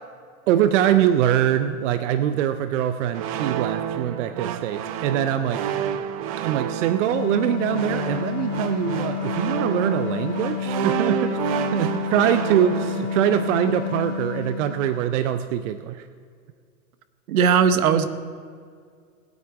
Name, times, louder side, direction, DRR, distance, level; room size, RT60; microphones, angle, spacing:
voice 1, 0.5-5.7 6.4-11.4 11.7-16.1, right 10 dB, 55° right, 10 dB, 0.7 m, -23 dB
sound 1, 3.1-14.0, right 9 dB, 30° right, 0.4 m, -30 dB
sound 2, 7.1-15.2, left 9 dB, 35° left, 0.7 m, -30 dB
voice 2, 17.3-18.1, right 7 dB, 75° right, 11 dB, 1.1 m, -18 dB
20.0 x 8.1 x 4.9 m, 2.1 s
hypercardioid pair, 130°, 43 cm